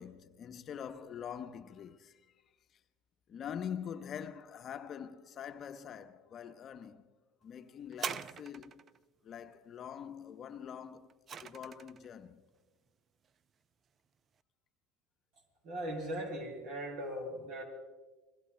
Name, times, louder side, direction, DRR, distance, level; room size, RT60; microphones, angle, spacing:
voice 1, 0.0-2.2 3.3-7.1 7.4-8.8 9.2-11.1 11.4-12.4, left 8 dB, 45° left, 0.9 m, -44 dB
sound 1, 7.9-9.0 10.7-12.1 12.9-13.0, right 7 dB, 40° right, 0.5 m, -42 dB
voice 2, 15.6-17.7, equal, 65° right, 6.4 m, -39 dB
29.5 x 21.0 x 2.2 m
hypercardioid pair, 75°, 0 cm